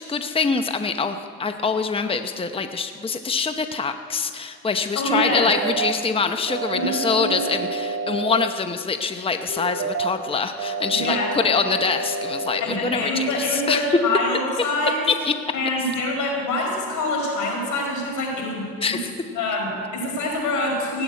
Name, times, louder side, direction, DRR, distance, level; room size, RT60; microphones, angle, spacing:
voice 1, 0.0-13.8 15.2-15.3 18.8-19.1, left 5 dB, 20° left, 7 dB, 0.8 m, -25 dB
voice 2, 4.9-5.5 6.7-7.6 10.9-11.3 12.6-15.0 15.5-18.6 18.9-19.0 19.3-21.0, left 1 dB, 85° left, -1 dB, 5.3 m, -25 dB
sound 1, 5.3-5.9 6.5-8.5 9.5-10.1 10.6-12.6, right 4 dB, 60° right, 2.3 m, -28 dB
16.0 x 8.8 x 9.6 m, 2.4 s
cardioid pair, 90°, 30 cm